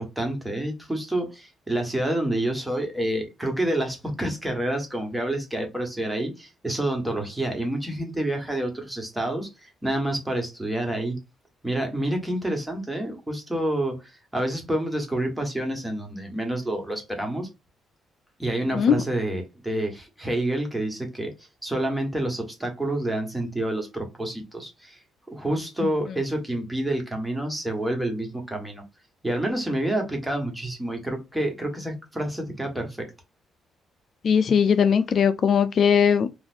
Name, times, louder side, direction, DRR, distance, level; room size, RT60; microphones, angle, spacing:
voice 1, 0.0-11.2 11.6-14.0 14.3-17.5 18.4-21.3 21.6-25.0 25.3-28.8 29.2-33.1, right 1 dB, 10° right, 1.4 m, -28 dB
voice 2, 34.2-36.4, left 7 dB, 55° left, 0.4 m, -19 dB
4.0 x 2.5 x 2.6 m
cardioid pair, 90°, 0 cm